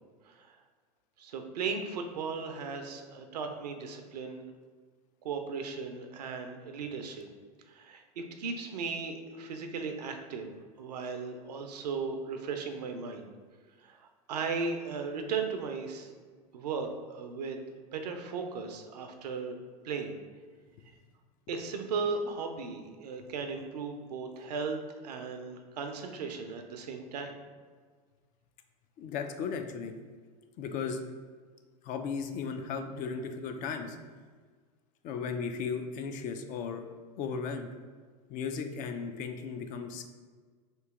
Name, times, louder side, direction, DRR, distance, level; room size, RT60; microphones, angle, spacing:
voice 1, 0.3-0.6 1.2-4.4 5.2-7.3 7.7-10.5 10.8-13.3 13.8-16.1 16.5-19.6 19.8-20.2 21.5-27.4, right 5 dB, 80° right, 5 dB, 0.5 m, -36 dB
voice 2, 29.0-29.9 30.6-31.0 31.8-34.0 35.0-36.8 37.2-37.7 38.3-40.0, left 5 dB, 40° left, 6 dB, 0.4 m, -36 dB
3.0 x 2.8 x 3.5 m, 1.5 s
hypercardioid pair, 95°, 21 cm